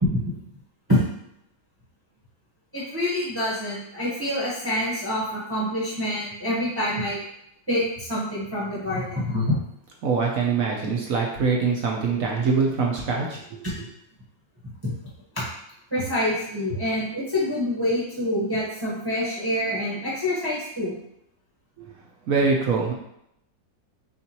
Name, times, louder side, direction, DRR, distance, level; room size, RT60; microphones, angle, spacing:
voice 1, 2.7-7.2 7.7-9.6 12.2-12.3 13.6-13.8 14.6-14.9 15.3-15.4 15.9-20.9, left 1 dB, 15° right, -7 dB, 0.9 m, -26 dB
voice 2, 10.0-13.6 22.3-22.9, right 4 dB, 60° right, -1 dB, 0.9 m, -23 dB
6.8 x 2.5 x 2.9 m, 0.77 s
omnidirectional pair, 1.9 m